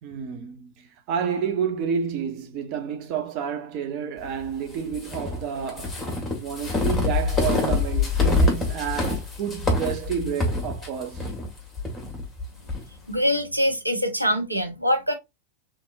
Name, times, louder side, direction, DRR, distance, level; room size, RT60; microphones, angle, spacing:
voice 1, 0.0-6.1 6.4-11.3, right 7 dB, 40° right, 0.8 m, -30 dB
sound 1, 4.9-12.8, left 3 dB, 5° left, 1.7 m, -25 dB
voice 2, 13.1-15.1, equal, 90° right, 1.0 m, -24 dB
3.5 x 3.4 x 2.5 m
figure-of-eight pair, 90°, 0 cm